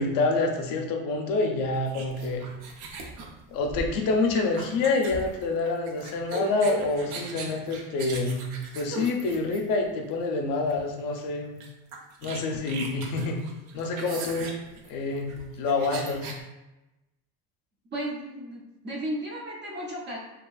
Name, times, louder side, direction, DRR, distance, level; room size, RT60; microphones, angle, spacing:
voice 1, 0.0-2.4 3.5-8.5 8.7-11.6 12.2-13.4 13.7-14.5 14.8-16.3, left 3 dB, 60° left, 2 dB, 0.5 m, -27 dB
sound 1, 1.9-9.9 10.7-10.9 11.2-11.3 11.6-16.4, right 2 dB, 80° right, 0.6 m, -38 dB
voice 2, 17.9-20.2, right 1 dB, 30° right, -3 dB, 0.4 m, -34 dB
2.7 x 2.3 x 2.3 m, 1.0 s
cardioid pair, 155°, 38 cm